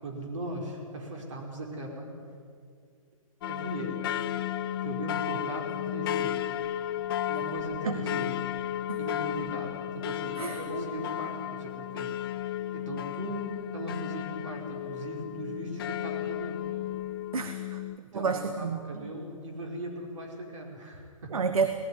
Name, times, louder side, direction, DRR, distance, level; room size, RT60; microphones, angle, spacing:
voice 1, 0.0-2.1 3.5-4.0 4.8-6.5 7.0-8.4 9.0-12.2 12.4-16.6 18.0-21.3, right 1 dB, 60° right, 2 dB, 5.0 m, -38 dB
sound 1, 3.4-18.0, left 12 dB, 40° left, 0.6 m, -34 dB
voice 2, 10.4-10.9 17.3-17.8 18.1-19.1 21.3-21.7, right 5 dB, 85° right, 8 dB, 1.4 m, -30 dB
19.0 x 14.5 x 9.9 m, 2.2 s
hypercardioid pair, 155°, 18 cm